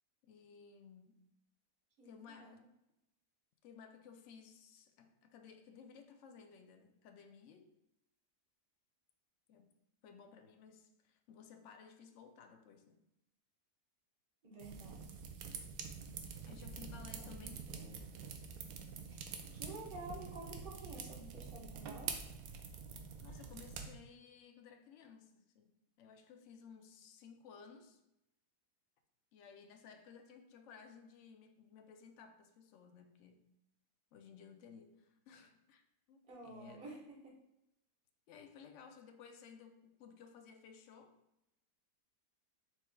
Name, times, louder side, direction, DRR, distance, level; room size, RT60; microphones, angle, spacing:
voice 1, 0.2-1.2 2.0-2.7 3.6-7.7 9.5-9.7 10.0-13.1 16.5-17.7 23.2-28.0 29.3-33.5 34.1-37.0 38.3-41.2, left 6 dB, 75° left, 0.7 m, -57 dB
voice 2, 2.0-2.7 14.4-15.0 16.7-18.0 19.1-19.3 19.5-22.2 36.3-37.3, right 2 dB, 35° right, 1.2 m, -51 dB
sound 1, 14.6-23.9, right 6 dB, 70° right, 0.9 m, -46 dB
4.4 x 4.3 x 2.3 m
omnidirectional pair, 1.7 m